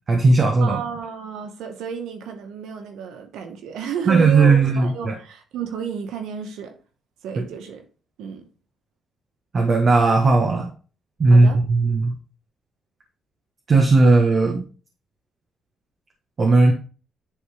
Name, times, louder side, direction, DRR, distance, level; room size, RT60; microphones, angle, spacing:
voice 1, 0.1-0.8 4.1-5.1 9.5-10.7 11.2-12.1 13.7-14.6 16.4-16.7, right 3 dB, 45° right, 1 dB, 1.3 m, -16 dB
voice 2, 0.6-6.7 7.2-7.8 8.2-8.4 11.3-11.6, right 7 dB, 85° right, 5 dB, 1.2 m, -32 dB
10.0 x 3.5 x 3.3 m, 0.37 s
cardioid pair, 90°, 0 cm